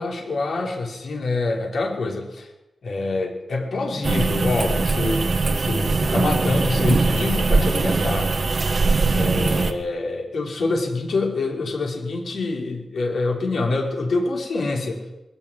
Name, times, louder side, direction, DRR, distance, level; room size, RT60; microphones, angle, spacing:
voice 1, 0.0-2.5 2.8-8.3 9.1-15.1, left 3 dB, 55° left, -1 dB, 5.8 m, -26 dB
sound 1, 4.0-9.7, right 3 dB, 35° right, 1.7 m, -21 dB
21.5 x 16.0 x 9.8 m, 0.97 s
wide cardioid pair, 180°, 0 cm